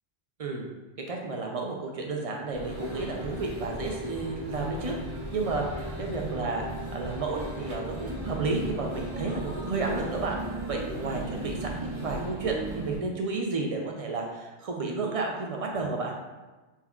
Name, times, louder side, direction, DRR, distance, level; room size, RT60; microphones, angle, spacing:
voice 1, 1.0-5.0 5.3-6.6 6.9-10.4 10.7-16.1, right 3 dB, 55° right, 0 dB, 0.4 m, -32 dB
sound 1, 2.5-13.0, right 1 dB, 80° right, 1.1 m, -36 dB
5.6 x 2.2 x 2.3 m, 1.2 s
omnidirectional pair, 1.0 m